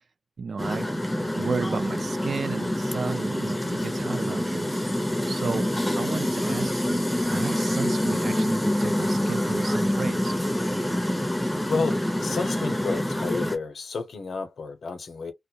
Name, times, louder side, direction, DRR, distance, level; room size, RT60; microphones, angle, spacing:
voice 1, 0.4-0.9 1.3-5.0 5.3-10.3, right 5 dB, 60° right, 0.3 m, -33 dB
sound 1, 0.6-13.6, left 1 dB, 5° left, 0.5 m, -26 dB
voice 2, 11.0-11.4 11.7-15.3, left 4 dB, 90° left, 0.7 m, -31 dB
2.2 x 2.1 x 2.6 m
wide cardioid pair, 165°, 0 cm